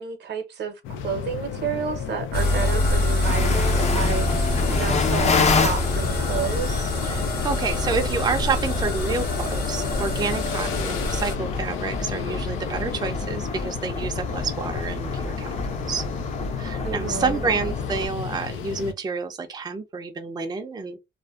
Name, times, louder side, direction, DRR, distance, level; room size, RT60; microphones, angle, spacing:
voice 1, 0.0-6.9 16.8-17.4, right 7 dB, 60° right, 0.7 m, -31 dB
sound 1, 0.8-18.9, left 7 dB, 85° left, 0.4 m, -33 dB
sound 2, 2.3-11.4, left 2 dB, 55° left, 1.1 m, -25 dB
sound 3, 3.2-18.1, left 3 dB, 35° left, 0.5 m, -29 dB
voice 2, 7.0-15.6 15.9-16.0 16.6-21.0, right 4 dB, 20° right, 0.4 m, -29 dB
2.5 x 2.1 x 2.3 m
cardioid pair, 90°, 20 cm